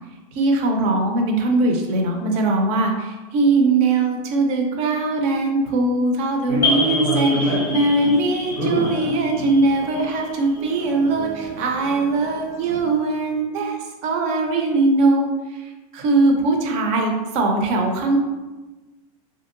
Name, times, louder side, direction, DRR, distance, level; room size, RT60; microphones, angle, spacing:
voice 1, 0.3-15.3 15.5-18.2, right 3 dB, 35° right, 2 dB, 0.5 m, -21 dB
sound 1, 6.5-12.8, equal, 65° right, 0.8 m, -27 dB
sound 2, 6.6-11.1, left 3 dB, 15° left, 0.6 m, -28 dB
3.0 x 2.7 x 2.5 m, 1.2 s
supercardioid pair, 150°, 19 cm